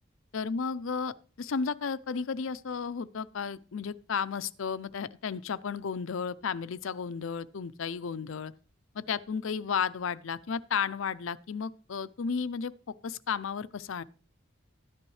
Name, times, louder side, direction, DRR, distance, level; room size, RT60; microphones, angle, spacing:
voice 1, 0.3-8.5 8.9-12.7 13.0-14.0, left 6 dB, 75° left, 0.5 m, -33 dB
13.0 x 10.5 x 3.2 m
head